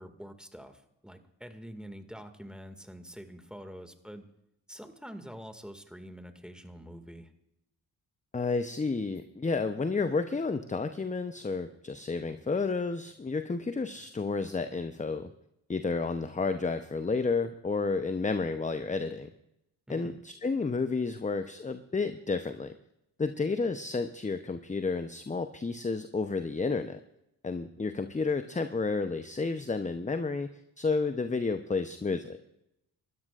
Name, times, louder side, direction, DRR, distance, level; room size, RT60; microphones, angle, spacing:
voice 1, 0.0-4.3 4.7-7.3 19.9-20.2, equal, ahead, 7 dB, 2.1 m, -46 dB
voice 2, 8.3-15.3 15.7-19.3 19.9-22.7 23.2-27.0 27.4-30.5 30.8-32.4, left 4 dB, 15° left, 10 dB, 0.8 m, -31 dB
29.5 x 13.0 x 2.5 m, 0.82 s
hypercardioid pair, 40°, 49 cm